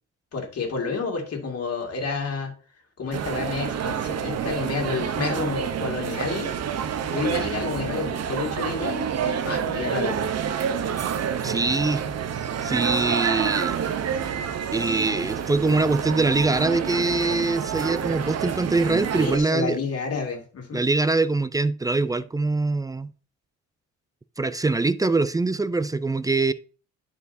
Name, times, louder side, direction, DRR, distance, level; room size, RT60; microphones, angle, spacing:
voice 1, 0.3-2.5 3.0-6.5 7.1-10.3 19.2-20.8, left 4 dB, 55° left, 2.1 m, -30 dB
sound 1, 3.1-19.4, right 8 dB, 55° right, 0.8 m, -28 dB
voice 2, 11.4-12.0 12.6-13.8 14.7-19.8 20.7-23.1 24.4-26.5, right 3 dB, 10° right, 0.3 m, -23 dB
11.0 x 4.5 x 2.7 m
cardioid pair, 90°, 30 cm